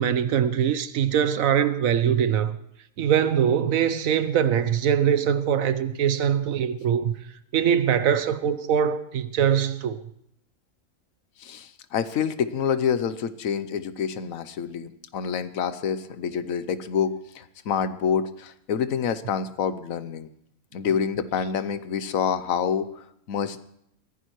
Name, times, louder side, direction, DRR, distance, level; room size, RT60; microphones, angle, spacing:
voice 1, 0.0-2.5 3.0-7.1 7.5-10.0, right 8 dB, 75° right, 1.2 m, -22 dB
voice 2, 11.4-20.3 20.7-23.6, left 7 dB, 80° left, 1.2 m, -27 dB
22.5 x 15.5 x 3.1 m
omnidirectional pair, 1.4 m